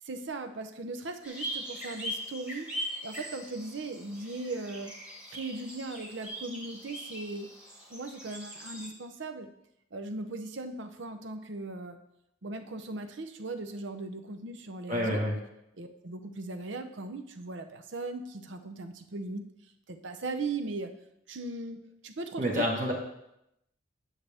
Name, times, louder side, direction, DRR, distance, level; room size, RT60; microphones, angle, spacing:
voice 1, 0.0-2.7 3.0-4.9 5.3-7.5 7.9-9.5 9.9-12.0 12.4-15.2 15.8-19.5 19.9-20.9 21.3-22.7, right 3 dB, 70° right, 7 dB, 0.7 m, -38 dB
sound 1, 1.2-8.9, equal, 5° right, 1.4 m, -41 dB
voice 2, 14.9-15.3 22.4-22.9, equal, 40° right, -2 dB, 1.4 m, -28 dB
9.6 x 6.8 x 3.5 m, 0.81 s
head